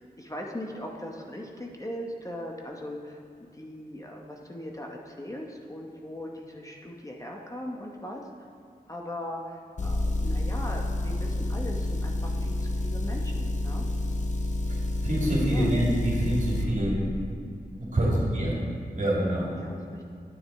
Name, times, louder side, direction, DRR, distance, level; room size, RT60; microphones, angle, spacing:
voice 1, 0.0-8.3 8.9-13.9 15.5-15.7 17.9-18.2 19.6-20.1, left 1 dB, 20° left, 0 dB, 0.9 m, -39 dB
Motor vehicle (road) / Engine, 9.8-16.7, left 1 dB, 50° left, 0.8 m, -29 dB
voice 2, 14.7-17.0 17.8-18.6 18.9-19.5, right 1 dB, 50° right, -4 dB, 2.3 m, -26 dB
9.6 x 6.6 x 4.2 m, 2.4 s
wide cardioid pair, 60°, 16 cm